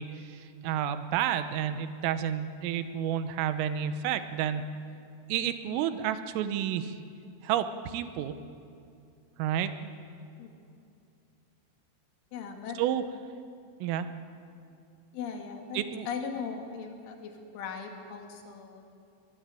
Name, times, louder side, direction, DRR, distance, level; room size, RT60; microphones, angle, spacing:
voice 1, 0.0-4.7 5.3-7.0 7.4-8.4 9.4-9.7 12.8-13.0 13.8-14.1 15.8-16.1, right 10 dB, 85° right, 11 dB, 3.6 m, -30 dB
voice 2, 12.3-12.8 15.1-18.8, left 6 dB, 70° left, 3 dB, 4.5 m, -39 dB
23.0 x 20.0 x 9.1 m, 2.5 s
omnidirectional pair, 5.8 m